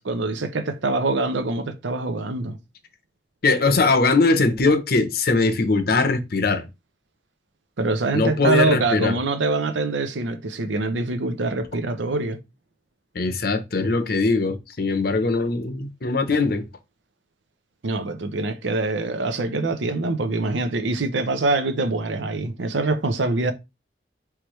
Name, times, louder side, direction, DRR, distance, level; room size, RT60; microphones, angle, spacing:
voice 1, 0.0-2.6 7.8-12.4 17.8-23.5, right 2 dB, 90° right, 0.7 m, -24 dB
voice 2, 3.4-6.6 8.1-9.2 13.1-16.7, left 3 dB, 55° left, 0.7 m, -21 dB
4.7 x 3.2 x 3.1 m
head